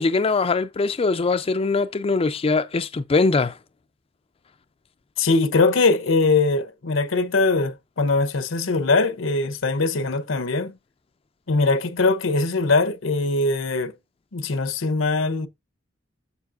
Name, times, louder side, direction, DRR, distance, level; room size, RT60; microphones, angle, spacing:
voice 1, 0.0-3.6, left 3 dB, 30° left, 0.4 m, -22 dB
voice 2, 5.2-10.7 11.5-13.9 14.3-15.5, left 3 dB, 85° left, 0.9 m, -21 dB
7.0 x 6.9 x 2.5 m
head